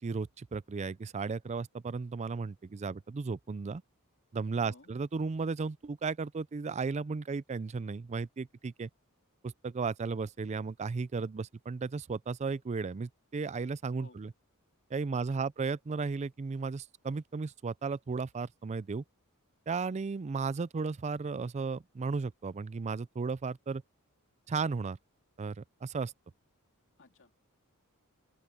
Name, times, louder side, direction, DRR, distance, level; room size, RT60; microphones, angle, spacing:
voice 1, 0.0-3.8 4.3-8.9 9.4-14.3 14.9-19.0 19.7-23.8 24.5-25.0 25.4-26.1, right 4 dB, 30° right, 0.4 m, -35 dB
voice 2, 4.6-4.9 14.0-14.2 15.1-15.5 27.0-27.4, left 3 dB, 60° left, 3.0 m, -57 dB
open air
head